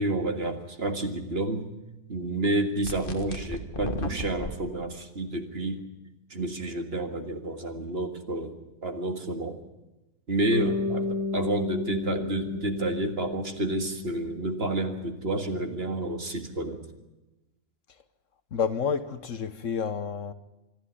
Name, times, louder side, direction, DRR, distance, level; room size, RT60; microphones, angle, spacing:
voice 1, 0.0-1.7 2.1-5.8 6.3-9.6 10.3-16.8, right 2 dB, 40° right, 2.0 m, -30 dB
sound 1, 2.8-4.5, left 1 dB, 35° left, 1.7 m, -34 dB
Bass guitar, 10.5-14.8, left 4 dB, 75° left, 2.2 m, -33 dB
voice 2, 18.5-20.3, left 6 dB, 60° left, 1.3 m, -29 dB
26.5 x 11.5 x 9.9 m
omnidirectional pair, 1.6 m